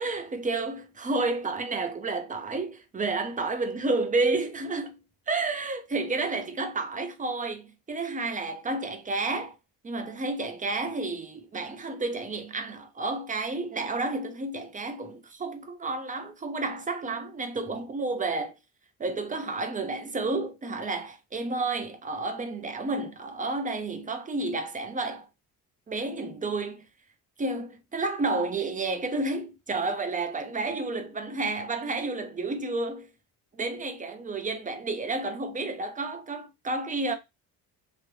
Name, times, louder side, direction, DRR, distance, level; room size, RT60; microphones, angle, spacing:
voice 1, 0.0-5.0 5.3-9.6 9.8-18.5 19.0-25.3 25.9-26.9 27.4-33.1 33.5-37.1, right 3 dB, 20° right, 0.6 m, -31 dB
3.0 x 2.5 x 3.0 m
cardioid pair, 120°, 40 cm